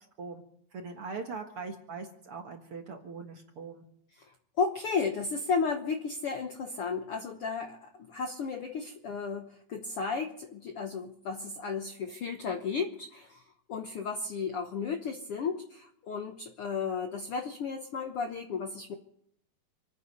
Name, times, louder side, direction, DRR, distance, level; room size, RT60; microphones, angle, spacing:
voice 1, 0.7-3.8, right 4 dB, 50° right, 3 dB, 2.0 m, -41 dB
voice 2, 4.2-19.0, left 5 dB, 65° left, 5 dB, 1.4 m, -34 dB
27.5 x 9.8 x 5.4 m, 0.70 s
omnidirectional pair, 4.0 m